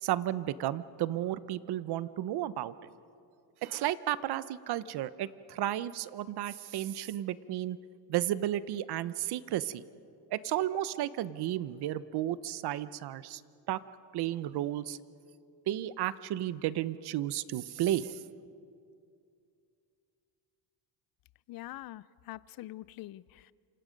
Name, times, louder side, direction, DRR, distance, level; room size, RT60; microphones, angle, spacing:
voice 1, 0.0-2.7 3.6-7.8 8.1-9.8 10.3-13.4 13.7-13.8 14.1-15.0 15.7-18.2, right 13 dB, 55° right, 0.9 m, -33 dB
voice 2, 21.5-23.5, left 16 dB, 50° left, 0.6 m, -44 dB
28.5 x 26.5 x 5.3 m
cardioid pair, 135°, 45 cm